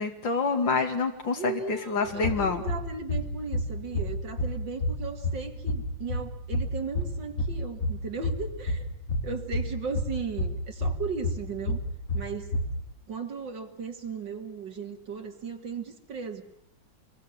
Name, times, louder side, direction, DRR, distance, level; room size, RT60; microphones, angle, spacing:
voice 1, 0.0-2.6, left 4 dB, 85° left, 3 dB, 3.0 m, -27 dB
voice 2, 1.4-8.9 9.2-11.8 12.1-12.5 13.1-16.4, right 5 dB, 75° right, 4 dB, 3.0 m, -36 dB
sound 1, 2.0-12.9, left 1 dB, 45° left, 5.4 m, -31 dB
26.0 x 22.5 x 7.3 m, 0.74 s
omnidirectional pair, 2.0 m